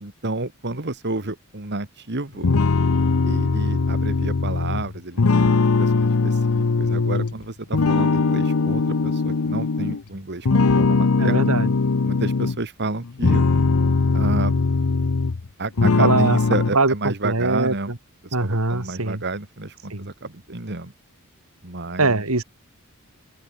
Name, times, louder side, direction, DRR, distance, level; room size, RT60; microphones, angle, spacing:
voice 1, 0.0-2.5 3.3-11.5 12.0-13.4 14.1-14.6 15.6-17.9 18.4-20.9 21.6-22.2, right 2 dB, 50° right, 2.3 m, -30 dB
sound 1, 2.4-7.3 7.7-10.0 10.5-12.6 13.0-15.5 15.8-16.7, left 4 dB, 75° left, 0.7 m, -20 dB
voice 2, 11.2-11.7 16.0-16.4 16.7-18.0 18.3-19.2 19.9-20.1 22.0-22.4, right 3 dB, 75° right, 3.2 m, -22 dB
open air
head